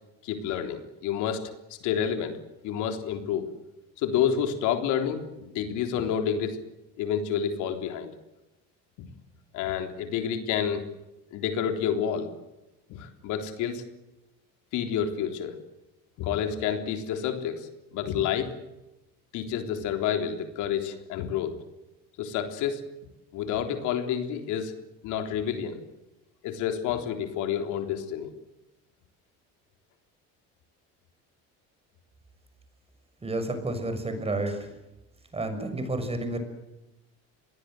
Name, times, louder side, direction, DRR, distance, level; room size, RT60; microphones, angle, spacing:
voice 1, 0.2-1.5 1.8-2.4 2.6-3.5 4.0-6.6 7.0-8.1 9.5-10.9 11.3-12.3 12.9-13.8 14.7-15.6 16.2-18.5 19.3-21.6 22.2-22.9 23.3-24.7 25.0-25.8 26.4-28.3, left 8 dB, 75° left, 6 dB, 3.8 m, -29 dB
voice 2, 33.2-34.7 35.3-36.4, right 2 dB, 20° right, 8 dB, 6.5 m, -30 dB
27.5 x 21.5 x 7.9 m, 0.96 s
cardioid pair, 120°, 30 cm